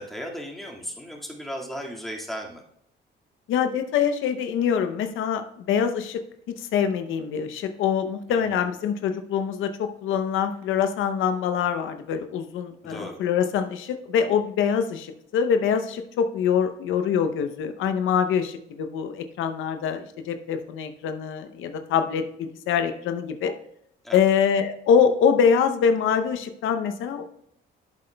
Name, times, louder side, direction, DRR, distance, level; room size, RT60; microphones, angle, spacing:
voice 1, 0.0-2.6 8.3-8.7 12.8-13.2 24.0-24.2, equal, ahead, -1 dB, 1.9 m, -36 dB
voice 2, 3.5-6.2 6.6-23.5 24.1-27.2, left 7 dB, 85° left, 8 dB, 0.7 m, -24 dB
11.0 x 7.7 x 2.2 m, 0.73 s
cardioid pair, 90°, 20 cm